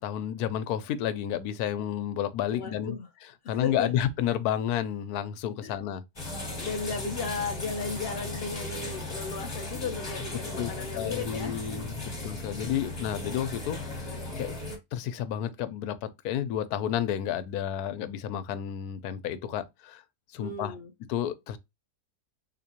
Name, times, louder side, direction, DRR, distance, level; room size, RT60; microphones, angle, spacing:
voice 1, 0.0-2.9 3.5-6.0 10.6-13.8 14.0-14.5 14.9-20.0 20.3-20.8 21.1-21.6, left 10 dB, 90° left, 1.1 m, -31 dB
voice 2, 2.5-3.1 3.4-3.9 5.6-5.8 6.5-11.8 20.4-20.9, left 4 dB, 70° left, 0.5 m, -35 dB
sound 1, 6.2-14.8, left 2 dB, 20° left, 1.0 m, -37 dB
3.7 x 2.9 x 2.8 m
omnidirectional pair, 1.6 m